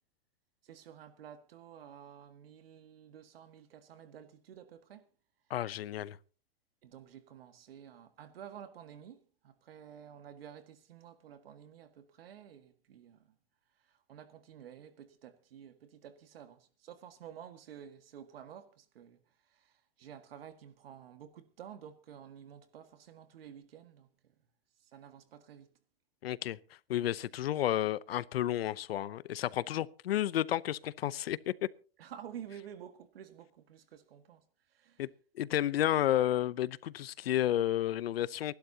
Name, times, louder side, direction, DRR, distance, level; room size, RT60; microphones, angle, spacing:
voice 1, 0.6-5.1 6.8-13.4 13.8-19.2 19.5-24.3 24.8-25.7 32.0-34.4 34.7-35.0, right 9 dB, 80° right, 1.8 m, -51 dB
voice 2, 5.5-6.2 26.2-26.6 26.9-31.5 35.0-35.1 35.3-38.5, left 12 dB, 90° left, 0.8 m, -31 dB
29.0 x 12.0 x 2.8 m
supercardioid pair, 165°, 29 cm